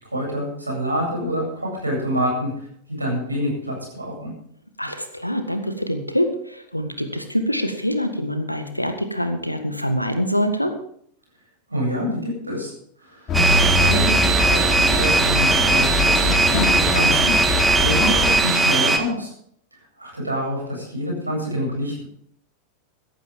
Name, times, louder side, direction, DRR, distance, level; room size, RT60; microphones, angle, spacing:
voice 1, 0.0-2.5 2.9-4.3 11.7-12.7 13.0-13.4 13.7-16.7 16.9-17.3 17.8-19.3 19.7-22.0, equal, 85° right, -1 dB, 7.9 m, -27 dB
voice 2, 4.8-10.7, equal, 90° left, 8 dB, 1.6 m, -25 dB
sound 1, 13.3-18.3, left 2 dB, 25° left, 3.6 m, -23 dB
sound 2, 13.3-19.0, right 3 dB, 10° right, 1.8 m, -19 dB
15.5 x 15.0 x 3.7 m, 0.66 s
figure-of-eight pair, 90°, 0 cm